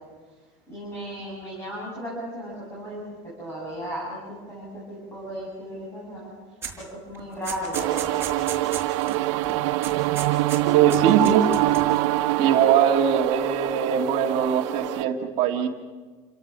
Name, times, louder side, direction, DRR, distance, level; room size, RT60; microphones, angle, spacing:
voice 1, 0.7-3.0 3.4-6.3 6.8-8.6, equal, 15° left, -5 dB, 7.4 m, -35 dB
sound 1, 6.6-6.8 7.1-9.2 9.4-9.6 9.8-10.6 10.9-12.0, right 7 dB, 15° right, 5.0 m, -35 dB
sound 2, 7.7-15.0, right 16 dB, 80° right, 0.7 m, -24 dB
voice 2, 10.7-11.4 12.4-15.7, right 8 dB, 45° right, 2 dB, 1.8 m, -21 dB
29.0 x 18.0 x 6.1 m, 1.4 s
cardioid pair, 170°, 16 cm